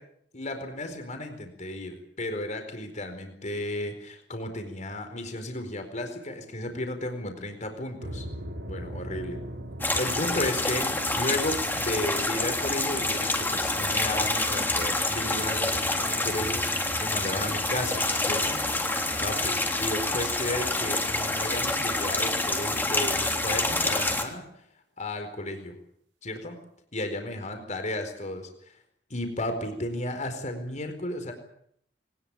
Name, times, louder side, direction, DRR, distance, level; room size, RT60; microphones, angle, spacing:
voice 1, 0.3-8.2 8.7-9.4 9.9-24.5 25.0-25.8 26.2-26.6 26.9-28.8 29.1-31.3, left 1 dB, 40° left, 6 dB, 4.5 m, -34 dB
sound 1, 8.0-23.2, right 1 dB, 75° right, 6.1 m, -44 dB
sound 2, 9.8-24.2, left 2 dB, 10° left, 3.4 m, -27 dB
22.5 x 20.0 x 8.8 m, 0.69 s
head